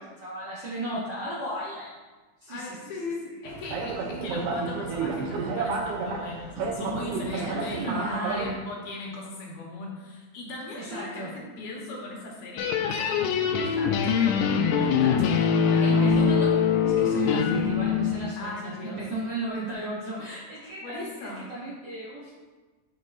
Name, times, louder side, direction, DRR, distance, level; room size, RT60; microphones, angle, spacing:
voice 1, 0.0-2.0 2.4-2.8 3.3-3.4 7.3-8.6 10.8-11.3 15.3-15.4 15.8-16.5 16.8-22.3, right 1 dB, 60° right, -8 dB, 1.2 m, -34 dB
voice 2, 2.5-15.3 15.6-16.4 18.4-19.0 20.8-21.5, left 2 dB, 70° left, -2 dB, 2.3 m, -38 dB
sound 1, 3.4-8.5, right 4 dB, 80° right, 1.3 m, -31 dB
sound 2, 12.6-18.2, left 6 dB, 90° left, 2.1 m, -23 dB
6.7 x 6.3 x 2.5 m, 1.3 s
omnidirectional pair, 3.4 m